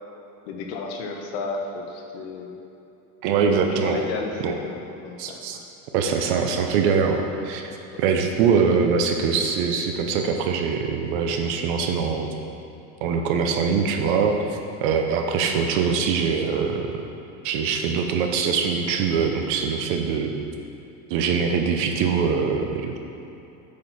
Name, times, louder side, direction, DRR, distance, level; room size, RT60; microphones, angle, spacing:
voice 1, 0.5-2.6 3.7-5.6 7.9-8.0 8.6-8.7, left 4 dB, 50° left, 2 dB, 0.9 m, -33 dB
voice 2, 3.2-4.0 4.4-4.5 5.2-5.6 5.9-7.6 8.0-12.3 13.0-17.0 17.4-20.3 21.1-23.0, right 6 dB, 45° right, 4 dB, 0.5 m, -23 dB
8.5 x 6.2 x 4.0 m, 2.9 s
cardioid pair, 180°, 39 cm